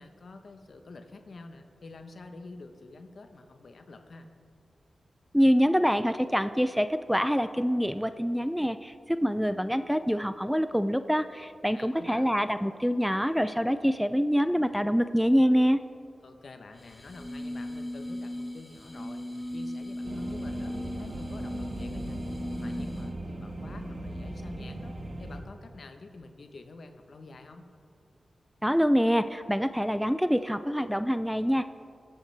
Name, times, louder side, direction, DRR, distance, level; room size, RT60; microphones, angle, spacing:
voice 1, 0.0-4.3 11.7-12.3 16.2-22.2 22.6-27.6, left 3 dB, 65° left, 6 dB, 1.0 m, -48 dB
voice 2, 5.3-15.8 28.6-31.7, equal, ahead, 12 dB, 0.4 m, -25 dB
sound 1, 16.7-23.3, left 1 dB, 20° left, 1.9 m, -37 dB
sound 2, 20.0-25.4, right 1 dB, 50° right, 1.3 m, -38 dB
21.0 x 8.0 x 3.4 m, 2.5 s
cardioid pair, 55°, 0 cm